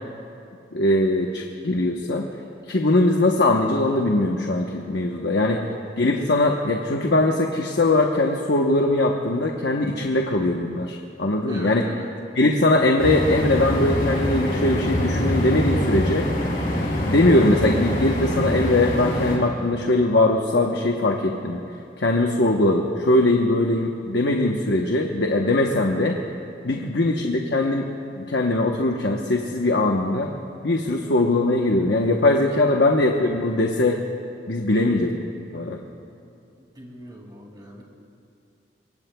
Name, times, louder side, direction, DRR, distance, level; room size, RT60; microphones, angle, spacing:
voice 1, 0.7-2.3 2.7-5.6 6.0-11.8 12.4-16.3 17.0-21.6 22.0-26.2 26.6-27.9 28.2-30.3 30.6-34.0 34.5-35.2 35.5-35.8, left 2 dB, 80° left, 1 dB, 1.0 m, -21 dB
voice 2, 11.5-12.2 22.3-22.5 26.8-27.1 30.9-31.2 34.6-34.9 36.5-37.8, equal, 25° right, -1 dB, 2.5 m, -42 dB
sound 1, 13.0-19.4, equal, 50° left, 3.9 m, -24 dB
24.5 x 23.5 x 2.3 m, 2.6 s
head